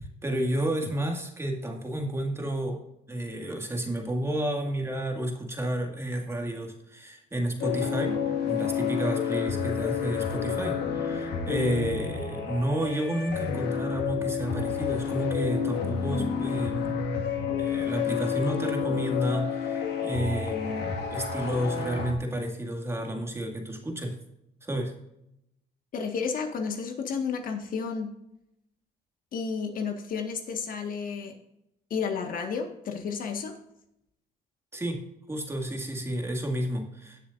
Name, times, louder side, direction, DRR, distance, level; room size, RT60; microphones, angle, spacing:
voice 1, 0.2-17.1 17.6-24.2 24.6-24.9 34.7-37.2, right 1 dB, 15° right, 2 dB, 2.1 m, -31 dB
sound 1, 7.6-22.1, left 7 dB, 80° left, 1.9 m, -30 dB
voice 2, 25.9-28.1 29.3-31.3 31.9-33.6, left 5 dB, 55° left, 4 dB, 1.7 m, -32 dB
18.0 x 7.0 x 2.6 m, 0.81 s
cardioid pair, 110°, 17 cm